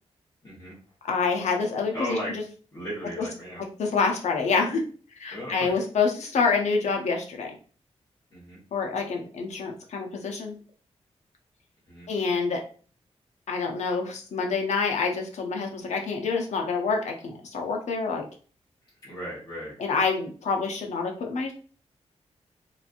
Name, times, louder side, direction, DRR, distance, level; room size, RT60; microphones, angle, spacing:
voice 1, 0.4-0.8 1.9-2.4 2.7-3.6 5.3-5.8 8.3-8.6 11.9-12.1 19.0-19.8, equal, 35° left, -9 dB, 1.2 m, -35 dB
voice 2, 1.0-2.2 3.2-3.3 3.8-4.8 5.2-7.6 8.7-10.6 12.1-12.6 13.5-18.2 19.8-21.5, left 4 dB, 85° left, 2 dB, 0.7 m, -27 dB
3.0 x 2.5 x 2.5 m, 0.40 s
wide cardioid pair, 145°, 12 cm